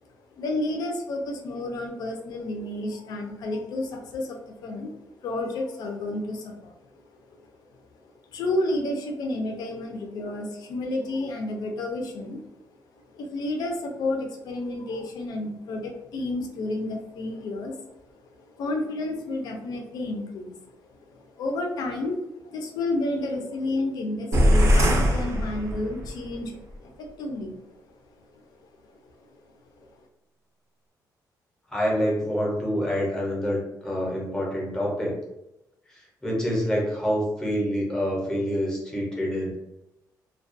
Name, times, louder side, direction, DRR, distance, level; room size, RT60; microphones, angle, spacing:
voice 1, 0.4-4.9 5.2-12.6 13.0-17.8 18.2-27.8 28.2-28.7 29.2-29.4 29.8-29.9, left 2 dB, 65° left, 2 dB, 0.5 m, -31 dB
sound 1, 24.3-26.2, equal, 45° right, 0.5 m, -21 dB
voice 2, 31.7-35.2 35.9-39.6, equal, 10° left, -3 dB, 0.7 m, -27 dB
2.3 x 2.2 x 2.5 m, 0.90 s
cardioid pair, 170°, 7 cm